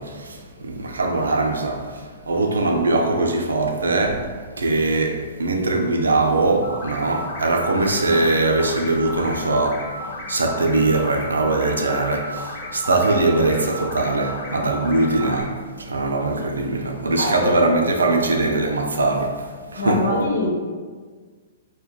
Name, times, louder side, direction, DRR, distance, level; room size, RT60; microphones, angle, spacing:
voice 1, 0.0-20.1, right 2 dB, 80° right, 0.4 m, -21 dB
sound 1, 6.6-15.4, equal, 40° left, 0.5 m, -34 dB
voice 2, 17.2-17.6 19.8-20.5, left 1 dB, 85° left, 0.7 m, -23 dB
3.5 x 2.2 x 2.2 m
figure-of-eight pair, 115°, 0 cm